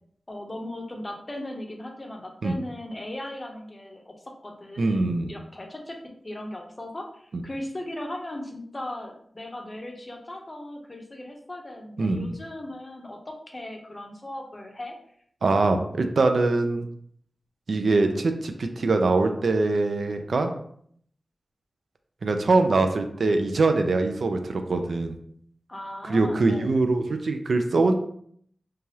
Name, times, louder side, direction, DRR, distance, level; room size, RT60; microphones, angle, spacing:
voice 1, 0.3-4.1 4.4-5.0 5.3-6.0 6.2-14.9 25.7-26.7, left 1 dB, 25° left, 2 dB, 0.6 m, -38 dB
voice 2, 4.8-5.3 7.3-7.4 12.0-12.3 15.4-16.9 17.7-20.5 22.2-25.2 26.0-27.9, right 3 dB, 70° right, 6 dB, 0.3 m, -23 dB
3.1 x 2.3 x 2.7 m, 0.65 s
wide cardioid pair, 95°, 0 cm